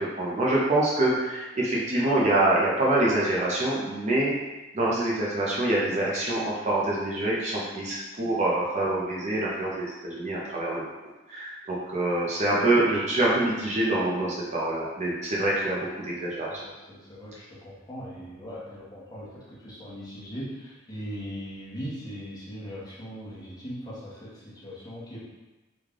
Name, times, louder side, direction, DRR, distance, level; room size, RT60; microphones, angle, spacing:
voice 1, 0.0-4.3 4.7-10.8 11.3-16.6, right 1 dB, 35° right, -5 dB, 0.5 m, -25 dB
voice 2, 16.5-25.2, equal, 20° left, -8 dB, 1.0 m, -39 dB
3.2 x 2.3 x 3.6 m, 1.1 s
head